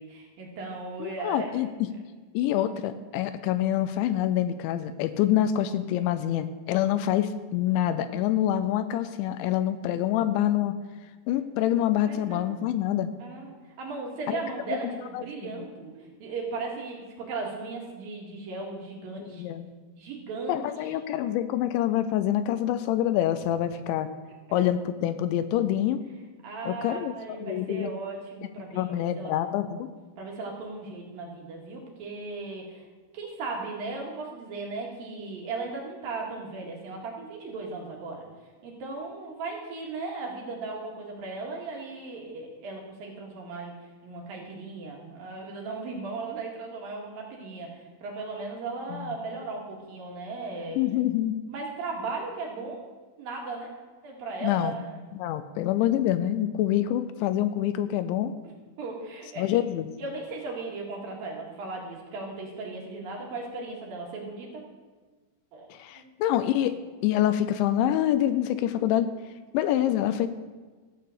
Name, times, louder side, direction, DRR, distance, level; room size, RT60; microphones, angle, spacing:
voice 1, 0.0-1.6 7.7-8.1 12.0-12.4 13.2-15.9 16.2-19.4 20.0-20.9 26.4-28.8 29.2-29.3 30.2-32.9 33.1-38.3 38.6-43.7 44.0-50.8 51.5-52.9 53.2-53.7 54.0-55.0 58.8-59.4 60.0-64.6 65.5-65.7 65.9-66.1, right 3 dB, 55° right, -1 dB, 3.3 m, -37 dB
voice 2, 1.0-1.7 2.3-10.8 11.3-13.1 14.3-14.4 14.7-15.2 19.2-19.7 20.5-24.1 24.5-26.0 26.7-27.1 27.4-27.9 28.7-29.9 48.9-49.2 50.8-51.4 54.4-54.8 55.1-58.3 59.4-59.9 65.7-66.8 67.0-69.1 69.5-70.3, left 12 dB, 80° left, 12 dB, 2.9 m, -26 dB
14.5 x 8.9 x 6.6 m, 1.3 s
omnidirectional pair, 5.4 m